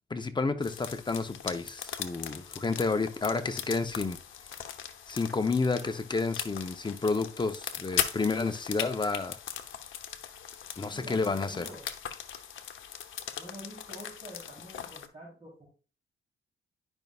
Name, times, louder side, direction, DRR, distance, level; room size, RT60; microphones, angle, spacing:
voice 1, 0.1-4.2 5.1-9.4 10.8-11.7, left 3 dB, 20° left, 0.7 m, -30 dB
sound 1, 0.6-15.1, left 9 dB, 75° left, 0.8 m, -39 dB
voice 2, 10.9-11.9 13.4-15.7, equal, 30° right, 3.4 m, -47 dB
10.5 x 5.4 x 2.4 m
cardioid pair, 90°, 21 cm